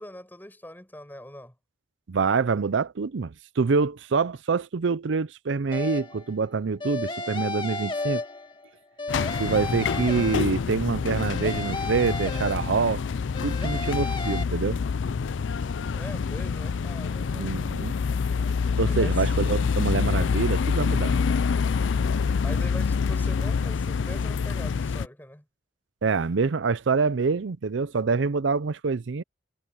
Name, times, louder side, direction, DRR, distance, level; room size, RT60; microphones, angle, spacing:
voice 1, 0.0-1.5 15.9-17.6 18.8-19.2 22.4-25.4, left 1 dB, 10° left, 7.7 m, -42 dB
voice 2, 2.1-8.2 9.4-13.0 13.4-14.8 17.4-17.9 18.8-21.2 26.0-29.2, right 4 dB, 80° right, 0.5 m, -26 dB
sound 1, 5.7-6.3 6.8-8.7 9.0-10.8 11.2-13.0 13.3-14.4, left 2 dB, 25° left, 2.3 m, -33 dB
Construction Site, 9.1-25.1, left 5 dB, 85° left, 0.4 m, -26 dB
head